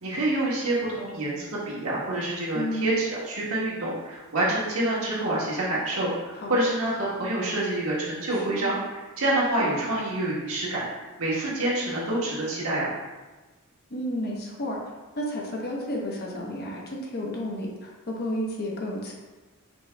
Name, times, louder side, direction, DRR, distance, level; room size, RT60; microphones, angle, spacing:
voice 1, 0.0-12.9, right 1 dB, 80° right, -6 dB, 1.4 m, -27 dB
voice 2, 2.5-3.0 6.3-6.6 8.3-8.8 13.9-14.8 15.1-19.1, equal, 45° left, -2 dB, 0.9 m, -32 dB
5.2 x 3.0 x 3.4 m, 1.2 s
head